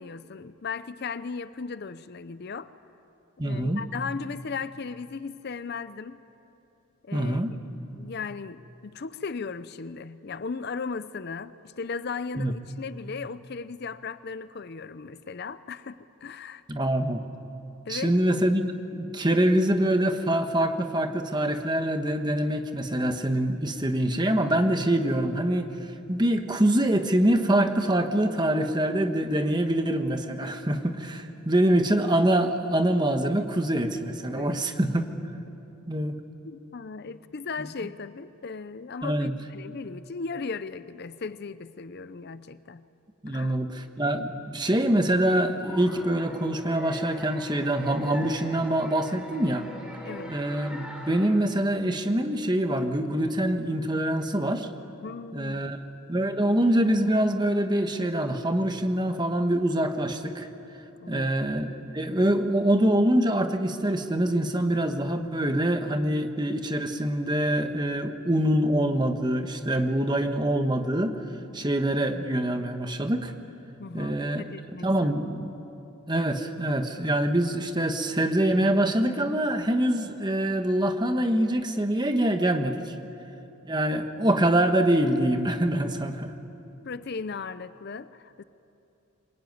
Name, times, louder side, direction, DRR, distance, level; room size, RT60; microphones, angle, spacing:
voice 1, 0.0-2.7 3.4-6.2 7.0-7.4 8.0-16.6 17.9-18.2 34.3-34.6 36.4-42.8 43.3-43.6 50.1-50.3 55.0-55.6 61.0-61.3 61.8-61.9 73.8-75.1 75.5-75.6 83.0-83.1 86.8-88.4, left 5 dB, 45° left, 14 dB, 0.5 m, -37 dB
voice 2, 3.4-3.8 7.1-7.5 12.4-12.5 16.7-17.2 17.9-25.7 26.1-35.1 35.9-36.2 39.0-39.3 43.2-49.7 50.3-54.7 55.3-55.8 56.1-60.5 61.1-71.2 71.5-73.3 73.9-74.4 74.8-75.5 76.1-82.9 83.7-86.3, right 1 dB, 20° right, 6 dB, 1.2 m, -25 dB
sound 1, 45.5-51.3, equal, 5° right, 3.4 m, -42 dB
24.5 x 21.5 x 9.4 m, 2.9 s
head